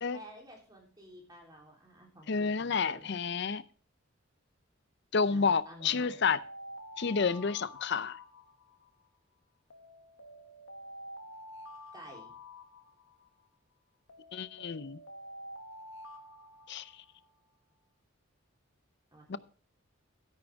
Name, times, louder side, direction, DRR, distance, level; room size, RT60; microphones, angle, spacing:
voice 1, 0.1-3.1 5.3-6.2 11.9-12.3 19.1-19.4, equal, 20° right, 3.6 m, -52 dB
voice 2, 2.3-3.6 5.1-6.4 7.0-8.2 14.3-15.0 16.7-16.9 19.3-19.4, left 5 dB, 55° left, 0.6 m, -30 dB
Alarm, 5.3-9.0 9.7-13.4 14.1-17.3, equal, 85° left, 1.6 m, -49 dB
13.0 x 10.5 x 3.5 m
head